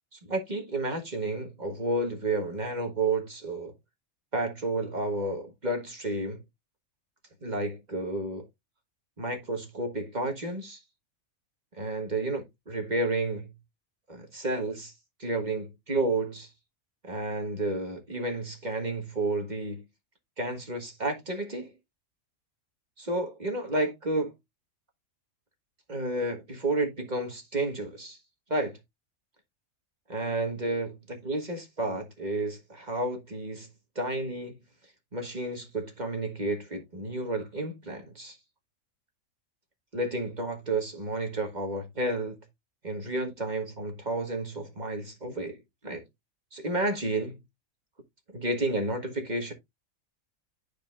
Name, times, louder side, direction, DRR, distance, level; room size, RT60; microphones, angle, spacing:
voice 1, 0.1-3.7 4.3-6.4 7.4-8.5 9.2-10.8 11.7-13.5 14.1-14.9 15.2-16.5 17.0-19.8 20.4-21.7 23.0-24.3 25.9-28.2 28.5-28.8 30.1-33.7 33.9-34.6 35.1-38.4 39.9-42.4 42.8-46.0 46.5-47.4 48.3-49.5, right 2 dB, 30° right, 1.5 m, -31 dB
11.5 x 4.9 x 2.4 m
omnidirectional pair, 1.5 m